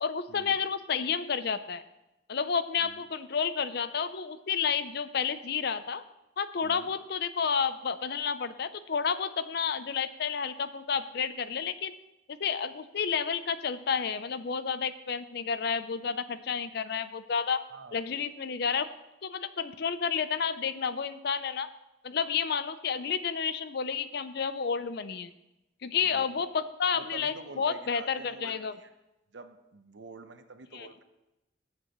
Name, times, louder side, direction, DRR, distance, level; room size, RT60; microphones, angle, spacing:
voice 1, 0.0-1.8 2.3-6.0 6.4-11.9 12.3-17.6 17.9-18.9 19.2-21.7 22.0-25.3 25.8-28.8 30.7-30.9, left 6 dB, 60° left, 12 dB, 0.5 m, -31 dB
voice 2, 26.9-28.9 29.3-31.0, right 3 dB, 70° right, 8 dB, 0.8 m, -47 dB
17.5 x 7.4 x 3.0 m, 0.96 s
head